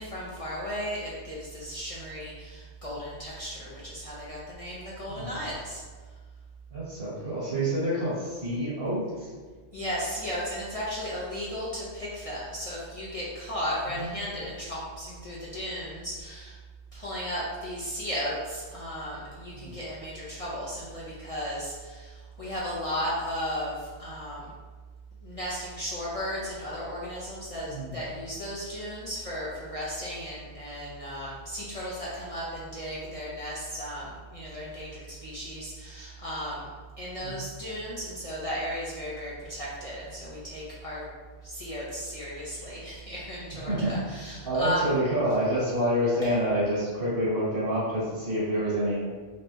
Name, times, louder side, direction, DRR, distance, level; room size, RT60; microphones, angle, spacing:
voice 1, 0.0-5.8 9.7-16.6 16.9-24.5 25.2-36.7 37.0-41.1 41.4-44.9 46.2-46.3, equal, 35° left, -8 dB, 0.7 m, -35 dB
voice 2, 6.7-9.3 13.9-14.1 19.6-19.7 27.7-27.9 37.2-37.4 43.7-43.9 44.4-49.0, equal, 60° right, -9 dB, 1.9 m, -28 dB
4.1 x 3.3 x 2.7 m, 1.5 s
omnidirectional pair, 1.1 m